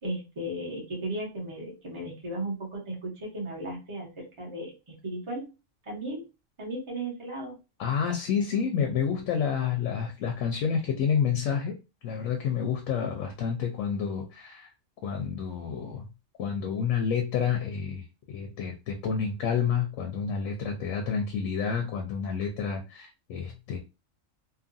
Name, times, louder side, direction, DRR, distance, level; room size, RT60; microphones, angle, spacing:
voice 1, 0.0-5.5 5.9-6.2 6.6-7.5, right 1 dB, 25° right, -3 dB, 0.9 m, -35 dB
voice 2, 7.8-11.8 12.0-14.7 15.0-16.0 16.4-23.8, left 7 dB, 75° left, 2 dB, 0.9 m, -29 dB
2.7 x 2.4 x 2.5 m, 0.28 s
omnidirectional pair, 1.4 m